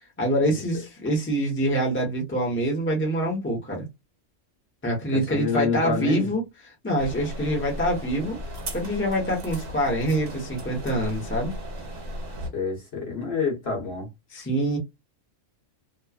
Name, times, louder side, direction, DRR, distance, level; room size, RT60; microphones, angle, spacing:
voice 1, 0.2-3.9 4.8-6.4 6.8-8.4 8.7-11.5 14.3-14.8, right 1 dB, 10° left, 0.8 m, -25 dB
voice 2, 5.1-6.3 12.5-14.1, left 5 dB, 55° left, 1.3 m, -27 dB
sound 1, 7.0-12.5, equal, 50° right, 1.4 m, -36 dB
3.0 x 2.1 x 2.3 m
omnidirectional pair, 1.3 m